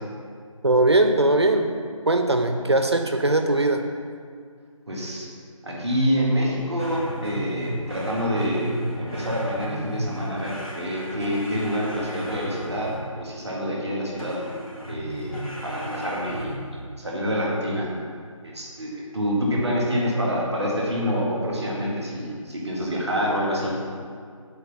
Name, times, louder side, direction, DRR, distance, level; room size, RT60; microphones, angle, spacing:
voice 1, 0.6-1.7 2.1-3.9, right 2 dB, 50° right, 5 dB, 0.6 m, -20 dB
voice 2, 4.9-5.3 5.6-14.4 14.9-17.9 18.4-23.7, equal, ahead, -21 dB, 0.7 m, -27 dB
sound 1, 6.8-13.2 14.2-16.8, equal, 90° left, 2.1 m, -35 dB
7.8 x 4.5 x 6.9 m, 2.1 s
figure-of-eight pair, 165°, 18 cm